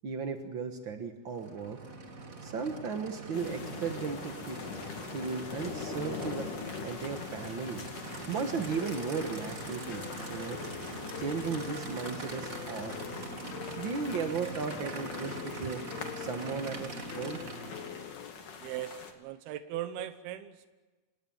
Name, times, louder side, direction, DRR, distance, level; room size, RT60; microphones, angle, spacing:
voice 1, 0.0-1.8 2.4-4.6 5.1-6.5 6.8-7.8 8.3-10.0 10.3-10.6 11.2-13.0 13.8-15.8 16.1-17.4, right 5 dB, 55° right, 5 dB, 1.3 m, -35 dB
Aircraft / Idling, 1.3-18.2, right 3 dB, 35° right, 1.5 m, -43 dB
sound 1, 3.3-19.1, left 5 dB, 60° left, 3.7 m, -43 dB
sound 2, 8.7-18.3, left 10 dB, 90° left, 1.5 m, -45 dB
voice 2, 18.6-20.7, right 12 dB, 85° right, 10 dB, 3.0 m, -39 dB
28.5 x 19.0 x 9.0 m, 1.3 s
omnidirectional pair, 4.4 m